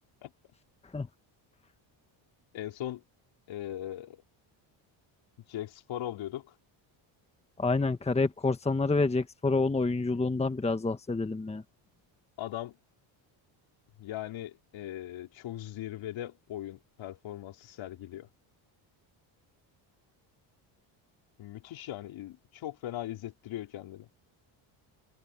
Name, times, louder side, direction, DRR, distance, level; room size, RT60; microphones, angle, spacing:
voice 1, 2.5-3.0 3.5-4.2 5.5-6.5 12.4-12.8 14.0-18.3 21.4-24.1, left 13 dB, 70° left, 4.3 m, -39 dB
voice 2, 7.6-11.6, left 3 dB, 15° left, 1.4 m, -28 dB
open air
cardioid pair, 115°, 48 cm